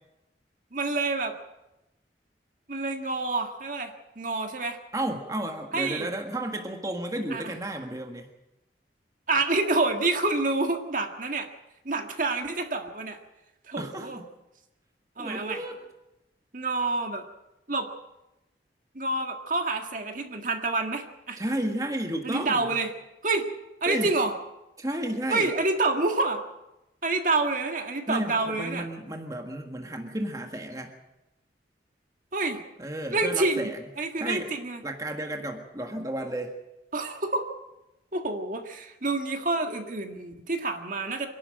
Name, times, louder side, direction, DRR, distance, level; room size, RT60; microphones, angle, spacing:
voice 1, 0.7-1.3 2.7-4.8 5.7-6.1 7.3-7.4 9.3-11.5 11.9-13.2 13.7-14.2 15.2-15.6 16.5-17.2 17.7-17.9 19.0-21.4 22.2-22.9 23.2-23.5 23.8-24.3 25.3-26.4 27.0-28.8 32.3-32.6 33.1-33.7 34.0-34.8 36.9-37.5 38.1-41.3, right 3 dB, 50° right, 5 dB, 1.9 m, -28 dB
voice 2, 4.9-8.3 13.8-14.3 15.2-15.8 21.4-22.8 23.9-24.2 24.8-25.5 28.1-30.9 32.8-33.8 34.2-34.5 34.8-36.5, right 1 dB, 20° right, 4 dB, 1.6 m, -32 dB
26.0 x 12.0 x 8.9 m, 0.95 s
head